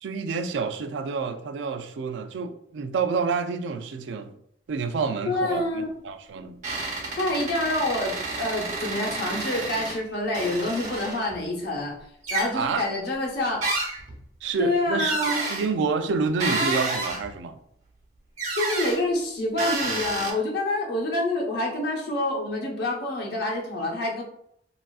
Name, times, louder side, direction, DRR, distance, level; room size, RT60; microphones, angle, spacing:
voice 1, 0.0-4.4 4.7-6.6 12.5-12.9 14.4-15.2 15.5-17.6, right 5 dB, 85° right, 0.3 m, -28 dB
voice 2, 5.2-5.9 7.2-8.1 8.4-11.9 12.3-13.6 14.6-15.4 18.5-24.2, left 2 dB, 60° left, 0.8 m, -27 dB
sound 1, 6.6-10.0 10.3-11.4 12.2-12.5 13.6-14.2 15.0-15.7 16.4-17.3 18.4-19.0 19.6-20.3, right 3 dB, 45° right, 1.0 m, -30 dB
3.3 x 2.4 x 2.3 m
head